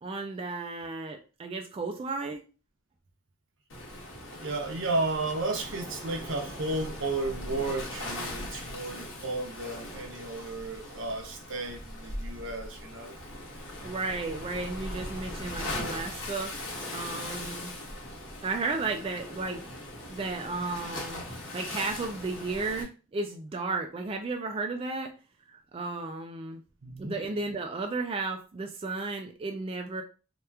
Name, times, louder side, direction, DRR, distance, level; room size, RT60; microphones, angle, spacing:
voice 1, 0.0-2.5 13.8-17.7 18.4-19.6 20.1-21.2 21.5-25.1 25.7-26.6 27.0-30.0, right 3 dB, 30° right, 0.3 m, -34 dB
Waves surf, 3.7-22.8, left 1 dB, 85° left, 1.1 m, -40 dB
voice 2, 4.4-13.2 17.2-17.3 26.8-27.2, right 2 dB, 75° right, 0.7 m, -33 dB
2.9 x 2.3 x 3.3 m
head